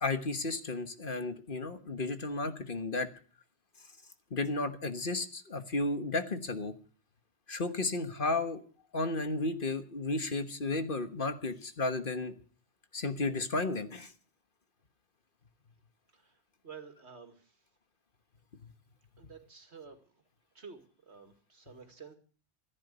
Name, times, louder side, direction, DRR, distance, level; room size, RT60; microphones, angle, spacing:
voice 1, 0.0-3.1 4.3-6.7 7.5-8.6 8.9-12.3 12.9-14.1, left 3 dB, 50° left, 9 dB, 1.5 m, -33 dB
voice 2, 16.6-17.5 19.2-20.0 20.5-22.2, right 6 dB, 75° right, 7 dB, 2.5 m, -51 dB
15.0 x 10.5 x 8.1 m, 0.43 s
omnidirectional pair, 1.1 m